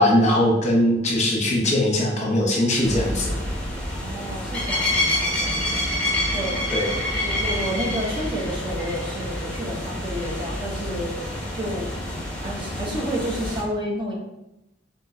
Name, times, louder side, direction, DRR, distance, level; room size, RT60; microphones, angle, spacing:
voice 1, 0.0-3.4 6.7-6.9, left 1 dB, 35° left, -1 dB, 0.9 m, -20 dB
sound 1, 2.8-13.6, left 1 dB, 5° left, 1.0 m, -27 dB
voice 2, 3.9-5.8 6.3-6.6 6.9-11.2 11.5-11.9 12.3-14.1, equal, 25° right, -2 dB, 0.8 m, -30 dB
4.4 x 3.9 x 2.7 m, 0.90 s
head